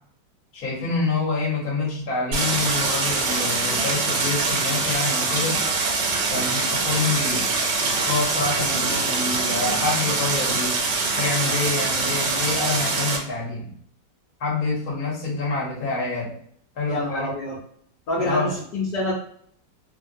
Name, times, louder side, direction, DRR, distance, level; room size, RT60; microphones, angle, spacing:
voice 1, 0.5-5.6 6.3-7.5 8.1-10.8 11.2-13.7 14.4-16.3 16.7-17.3 18.2-18.6, left 3 dB, 55° left, -4 dB, 1.6 m, -27 dB
Stream, 2.3-13.2, right 3 dB, 80° right, 1.3 m, -24 dB
voice 2, 16.9-17.5 18.1-19.1, left 1 dB, 70° left, -7 dB, 1.4 m, -26 dB
3.4 x 2.1 x 2.6 m, 0.63 s
omnidirectional pair, 1.9 m